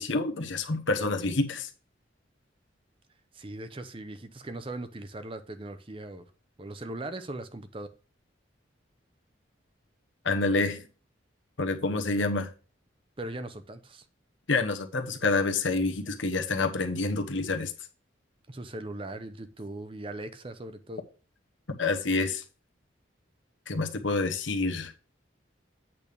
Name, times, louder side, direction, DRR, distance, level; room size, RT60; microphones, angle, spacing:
voice 1, 0.0-1.7 10.2-10.8 11.6-12.5 14.5-17.7 21.8-22.4 23.7-24.9, left 3 dB, 80° left, 1.1 m, -28 dB
voice 2, 3.3-6.3 6.6-7.9 13.2-14.0 18.5-21.0, right 2 dB, 30° right, 0.7 m, -39 dB
8.5 x 3.5 x 6.7 m
head